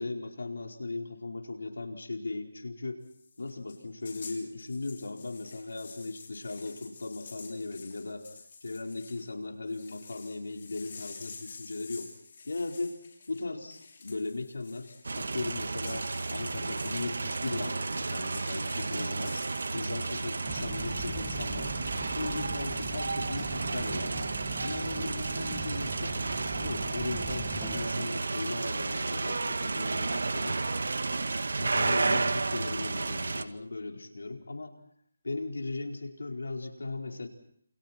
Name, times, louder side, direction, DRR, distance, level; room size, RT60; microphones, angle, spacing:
voice 1, 0.0-3.0 3.4-8.3 8.6-12.1 12.4-13.0 13.3-19.4 19.7-21.7 22.1-24.3 24.6-26.2 26.6-30.6 31.6-34.8 35.2-37.3, left 3 dB, 85° left, 3 dB, 4.7 m, -37 dB
sound 1, 3.0-9.3 9.7-20.7, left 4 dB, 45° left, 6.7 m, -50 dB
sound 2, 15.0-33.4, right 3 dB, 75° right, 2.0 m, -32 dB
sound 3, 20.4-27.9, right 1 dB, ahead, 1.7 m, -44 dB
29.0 x 28.5 x 4.5 m, 0.64 s
figure-of-eight pair, 165°, 0 cm